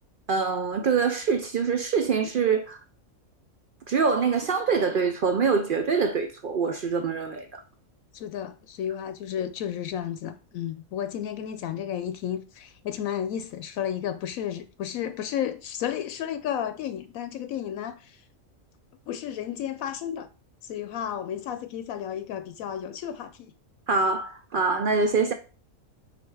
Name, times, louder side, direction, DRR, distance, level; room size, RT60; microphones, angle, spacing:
voice 1, 0.3-2.8 3.9-7.6 23.9-25.3, right 5 dB, 60° right, 0.5 m, -24 dB
voice 2, 8.1-18.2 19.1-20.3 20.6-23.5, left 9 dB, 80° left, 1.0 m, -32 dB
5.0 x 4.2 x 4.7 m
omnidirectional pair, 1.4 m